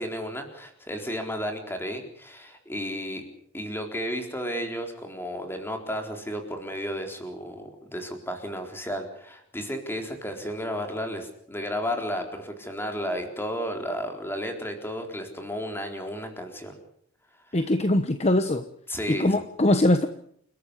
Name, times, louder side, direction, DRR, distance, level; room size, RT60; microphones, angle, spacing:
voice 1, 0.0-3.2 3.5-16.8 17.5-17.6 18.9-19.4, equal, 10° left, 4.0 m, -33 dB
voice 2, 17.5-18.6 19.1-20.1, left 1 dB, 30° left, 1.1 m, -22 dB
29.5 x 14.0 x 8.4 m
head